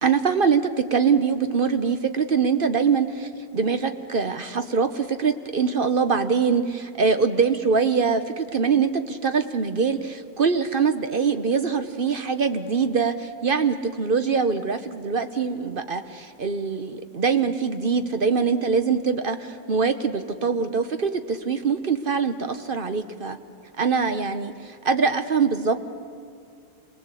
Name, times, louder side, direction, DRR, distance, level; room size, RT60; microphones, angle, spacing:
voice 1, 0.0-23.4 23.8-25.9, right 5 dB, 50° right, 9 dB, 0.6 m, -23 dB
27.0 x 21.0 x 8.3 m, 2.4 s
omnidirectional pair, 2.0 m